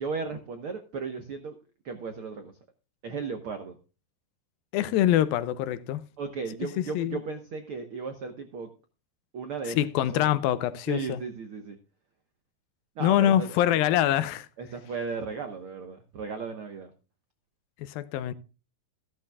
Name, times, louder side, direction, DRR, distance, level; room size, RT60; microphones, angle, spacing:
voice 1, 0.0-1.6 1.8-2.5 3.0-3.8 6.2-8.7 9.3-9.8 10.1-10.3 10.9-11.8 13.0-13.6 14.6-16.9, right 5 dB, 90° right, 1.2 m, -35 dB
voice 2, 4.7-6.0 6.8-7.2 9.8-11.2 13.0-14.5 17.8-18.3, left 12 dB, 80° left, 2.4 m, -24 dB
14.5 x 13.5 x 2.3 m
omnidirectional pair, 4.3 m